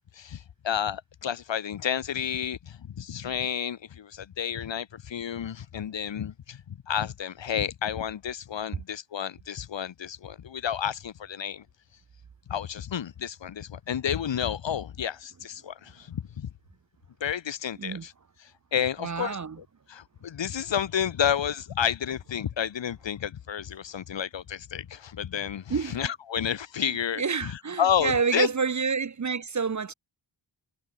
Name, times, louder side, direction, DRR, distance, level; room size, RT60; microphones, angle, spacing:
voice 1, 0.1-11.6 12.5-16.5 17.2-18.1 18.4-28.5, left 9 dB, 65° left, 0.7 m, -31 dB
voice 2, 19.0-19.6 25.7-26.0 26.9-29.9, right 5 dB, 35° right, 0.6 m, -28 dB
wide cardioid pair, 65°, 49 cm